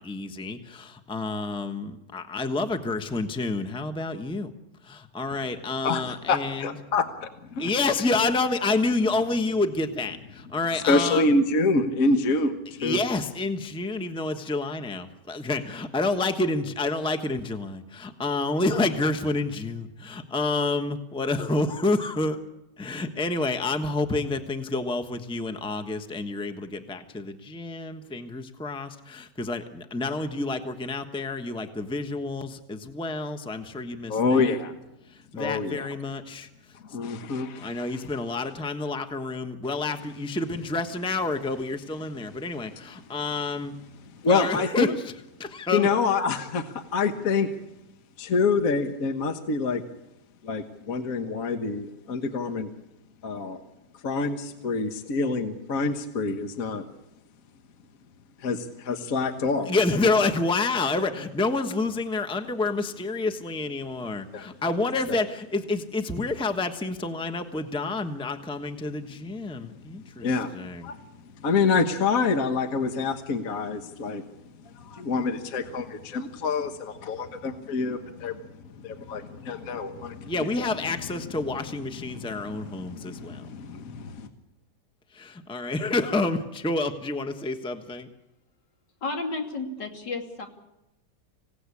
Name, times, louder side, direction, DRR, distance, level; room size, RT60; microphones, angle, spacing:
voice 1, 0.0-4.5 4.8-6.7 7.6-11.2 12.8-22.4 22.8-34.5 35.3-36.5 37.6-43.7 44.3-44.9 45.4-45.9 59.7-70.3 70.5-70.9 80.2-83.4 85.1-88.1, left 3 dB, 5° left, 7 dB, 1.0 m, -28 dB
voice 2, 5.8-7.7 10.7-13.0 34.1-34.7 35.3-35.9 36.8-38.1 42.7-42.8 43.1-43.2 44.2-45.0 45.7-47.5 48.2-49.8 50.4-52.7 53.2-53.6 54.0-56.9 58.4-59.7 60.2-60.3 64.3-64.5 65.1-65.2 70.2-74.2 74.6-81.0 81.2-81.6 81.9-84.3, left 4 dB, 55° left, 7 dB, 1.6 m, -27 dB
voice 3, 89.0-90.5, left 3 dB, 75° left, 3 dB, 3.4 m, -32 dB
26.5 x 17.5 x 8.5 m, 0.93 s
omnidirectional pair, 1.9 m